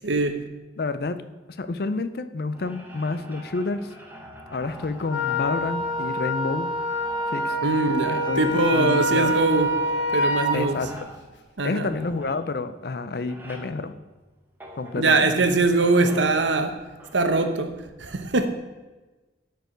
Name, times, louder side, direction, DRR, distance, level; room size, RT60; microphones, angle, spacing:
voice 1, 0.0-0.4 7.6-9.7 10.1-10.8 11.6-11.9 15.0-16.8 17.1-18.5, right 3 dB, 80° right, 0.9 m, -22 dB
voice 2, 0.8-1.2 1.5-3.9 4.5-6.7 7.3-7.6 8.1-9.4 10.5-10.9 11.6-14.0 14.8-15.5, left 3 dB, 55° left, 0.5 m, -29 dB
sound 1, 2.5-15.4 15.8-17.1, equal, 10° right, 1.2 m, -43 dB
Wind instrument woodwind instrument, 5.1-10.6, equal, 80° left, 1.3 m, -26 dB
12.5 x 4.7 x 5.1 m
head